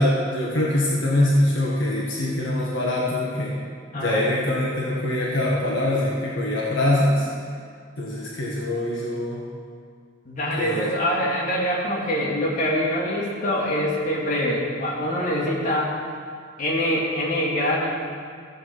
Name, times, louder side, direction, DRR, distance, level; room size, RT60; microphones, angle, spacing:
voice 1, 0.0-3.5 3.9-7.3 8.0-9.4 10.6-10.9, left 1 dB, 70° left, -4 dB, 1.6 m, -23 dB
voice 2, 10.3-16.0 16.6-17.9, equal, 40° left, -5 dB, 2.4 m, -24 dB
14.5 x 7.7 x 4.7 m, 2.1 s
head